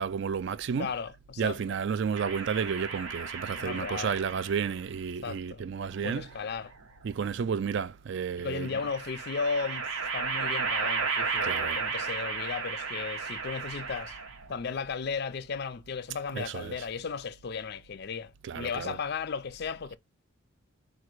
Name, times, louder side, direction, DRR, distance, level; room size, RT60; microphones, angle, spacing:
voice 1, 0.0-0.9 1.4-6.3 7.0-8.8 11.4-11.8 16.3-16.8 18.4-19.0, right 6 dB, 55° right, 0.3 m, -32 dB
voice 2, 0.8-1.8 3.6-4.2 5.2-5.7 6.0-6.7 8.4-14.2 14.5-20.0, left 5 dB, 50° left, 0.4 m, -35 dB
sound 1, 2.2-4.8 5.9-6.9 8.5-14.5, right 5 dB, 70° right, 1.0 m, -34 dB
5.0 x 2.3 x 4.5 m
head